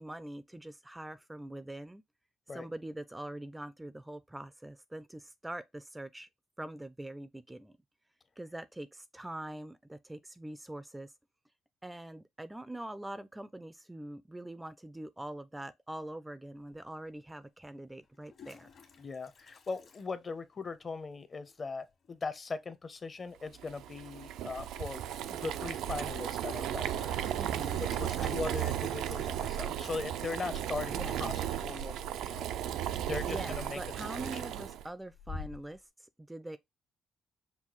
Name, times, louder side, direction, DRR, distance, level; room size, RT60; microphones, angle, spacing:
voice 1, 0.0-2.0 2.5-6.3 6.6-7.8 8.4-11.1 11.8-18.7 27.4-27.9 28.1-28.5 30.9-31.2 33.3-36.6, right 1 dB, 10° right, 0.3 m, -43 dB
Toilet flush, 16.7-16.8 18.0-20.9 21.1-21.2 21.5-21.6 21.9-22.2 24.0-24.1 24.4-24.5 26.1-32.7 33.0-33.5 33.9-34.4 34.8-35.8, left 4 dB, 60° left, 1.4 m, -51 dB
voice 2, 19.0-25.0 25.3-27.2 27.8-31.3 31.6-32.5 33.0-33.8 34.3-34.4, left 4 dB, 35° left, 0.6 m, -39 dB
Boiling, 23.6-34.9, right 10 dB, 85° right, 0.3 m, -35 dB
5.5 x 2.3 x 3.0 m
cardioid pair, 90°, 0 cm